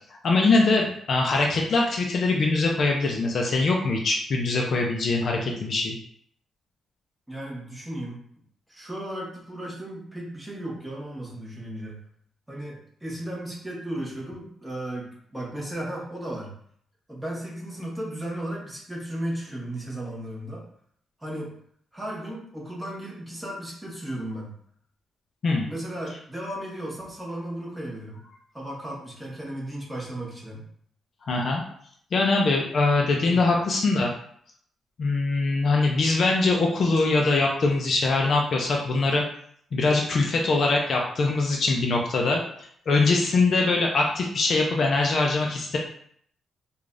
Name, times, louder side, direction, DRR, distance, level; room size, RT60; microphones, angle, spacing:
voice 1, 0.2-6.0 25.4-25.7 31.3-31.6 32.1-34.1 35.0-39.2 39.7-42.4 42.9-45.8, left 3 dB, 45° left, 0 dB, 0.4 m, -22 dB
voice 2, 7.3-8.2 8.7-12.0 12.5-16.5 17.1-20.7 21.2-21.5 21.9-24.5 25.7-28.2 28.5-30.7 33.3-33.4, right 1 dB, 5° right, -5 dB, 1.0 m, -35 dB
4.8 x 2.3 x 2.5 m, 0.64 s
cardioid pair, 160°, 0 cm